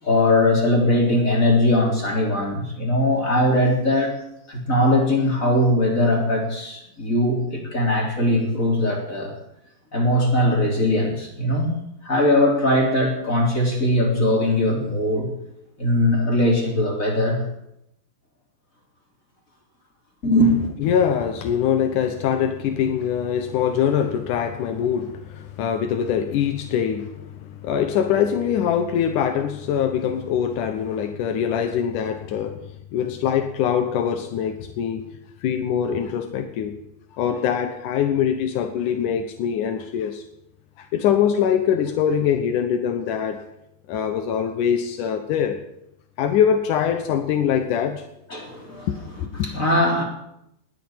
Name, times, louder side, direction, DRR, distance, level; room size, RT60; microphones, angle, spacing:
voice 1, 0.0-4.1 4.5-9.3 9.9-11.7 12.0-15.3 15.8-17.4 20.2-20.5 48.3-48.9 49.4-50.0, left 1 dB, 20° left, 3.4 m, -20 dB
voice 2, 20.8-35.1 35.4-36.8 37.2-40.2 40.8-43.5 43.9-45.6 46.2-48.1 49.2-49.5, left 8 dB, 75° left, 1.9 m, -23 dB
19.5 x 8.3 x 8.8 m
omnidirectional pair, 5.0 m